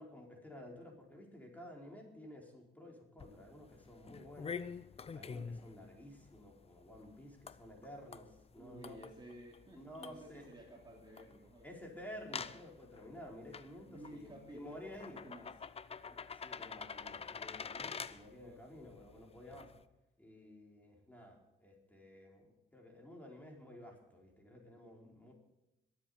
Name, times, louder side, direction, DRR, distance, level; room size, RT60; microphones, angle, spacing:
voice 1, 0.0-4.6 5.1-9.0 9.8-10.4 11.6-15.2 16.0-19.7 20.2-25.3, left 1 dB, 10° left, 0 dB, 4.5 m, -52 dB
sound 1, 3.2-19.8, left 6 dB, 30° left, 0.6 m, -49 dB
voice 2, 8.5-11.7 13.8-15.5 18.3-18.6, right 1 dB, 20° right, -2 dB, 3.1 m, -54 dB
22.0 x 8.3 x 5.1 m, 0.92 s
cardioid pair, 90°, 20 cm